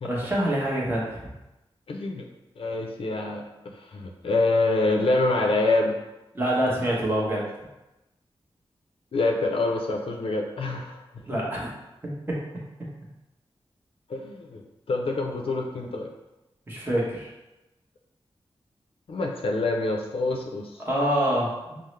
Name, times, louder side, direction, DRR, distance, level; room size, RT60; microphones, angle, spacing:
voice 1, 0.0-1.2 6.3-7.4 11.2-11.7 12.0-12.4 16.7-17.3 20.9-21.8, right 1 dB, 20° right, -6 dB, 1.1 m, -26 dB
voice 2, 1.9-2.3 2.6-6.0 9.1-11.0 14.1-14.6 14.9-16.1 19.1-20.8, left 2 dB, 70° left, 2 dB, 0.5 m, -26 dB
5.4 x 2.0 x 3.2 m, 0.98 s
wide cardioid pair, 115°, 10 cm